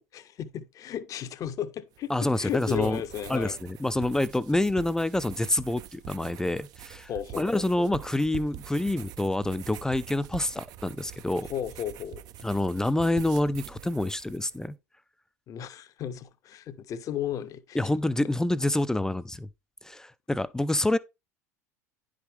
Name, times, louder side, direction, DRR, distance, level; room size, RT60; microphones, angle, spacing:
voice 1, 0.1-3.6 7.1-7.9 11.4-12.2 15.5-17.8, left 10 dB, 40° left, 0.8 m, -34 dB
sound 1, 1.9-14.7, right 12 dB, 50° right, 0.5 m, -45 dB
voice 2, 2.1-3.0 3.3-7.1 7.4-11.5 12.4-14.8 17.7-19.5 19.8-21.0, left 1 dB, 5° left, 0.4 m, -27 dB
10.0 x 4.9 x 3.3 m
hypercardioid pair, 75°, 9 cm